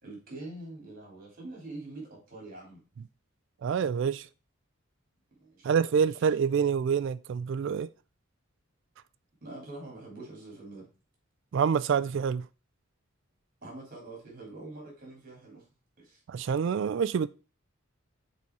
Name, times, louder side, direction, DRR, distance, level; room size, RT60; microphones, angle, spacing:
voice 1, 0.0-2.8 5.3-6.3 9.4-10.9 13.6-15.6 16.0-16.2, right 2 dB, 45° right, 3.4 m, -45 dB
voice 2, 3.6-4.3 5.6-7.9 11.5-12.5 16.3-17.3, right 7 dB, 60° right, 0.3 m, -27 dB
6.9 x 4.3 x 4.6 m
head